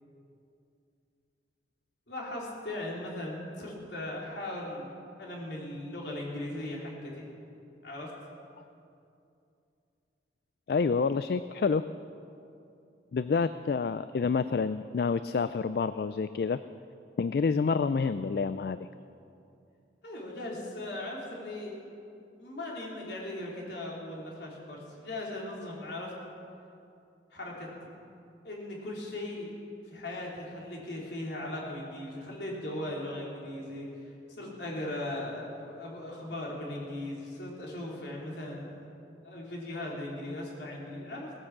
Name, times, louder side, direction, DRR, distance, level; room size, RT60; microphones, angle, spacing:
voice 1, 2.1-4.9 5.2-7.3 7.8-8.1 20.0-21.8 22.4-26.1 27.3-27.7 28.4-29.5 29.9-38.9 39.2-41.3, left 1 dB, 75° left, -3 dB, 3.5 m, -38 dB
voice 2, 10.7-11.8 13.1-16.6 17.2-18.9, left 5 dB, 55° left, 13 dB, 0.3 m, -28 dB
18.0 x 9.7 x 7.3 m, 2.6 s
head